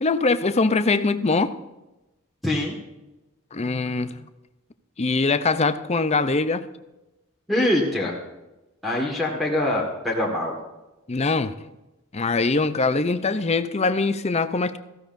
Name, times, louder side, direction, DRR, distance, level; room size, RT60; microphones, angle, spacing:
voice 1, 0.0-1.6 3.5-4.2 5.0-6.7 11.1-11.5 12.1-14.8, left 3 dB, 30° left, 11 dB, 0.6 m, -22 dB
voice 2, 2.4-2.8 7.5-8.2 8.8-10.5, left 1 dB, ahead, -5 dB, 1.7 m, -24 dB
17.5 x 15.0 x 2.6 m, 1.0 s
head